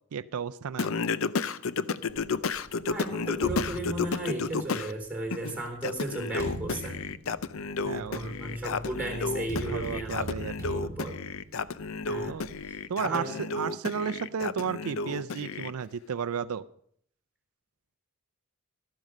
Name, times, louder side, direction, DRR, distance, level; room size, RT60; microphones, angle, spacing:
voice 1, 0.1-0.9 7.8-8.3 9.7-10.8 12.3-12.6 12.9-16.6, right 6 dB, 80° right, 11 dB, 0.4 m, -33 dB
Singing, 0.8-4.9 5.3-15.7, left 4 dB, 65° left, 0.5 m, -32 dB
sound 1, 2.1-4.9 5.6-12.7, equal, 15° left, 7.4 m, -41 dB
voice 2, 2.9-7.0 7.9-10.3 10.8-11.2 12.1-12.4 12.6-12.8 13.0-13.3, right 2 dB, 5° right, 2 dB, 3.9 m, -35 dB
13.0 x 12.5 x 5.3 m, 0.63 s
head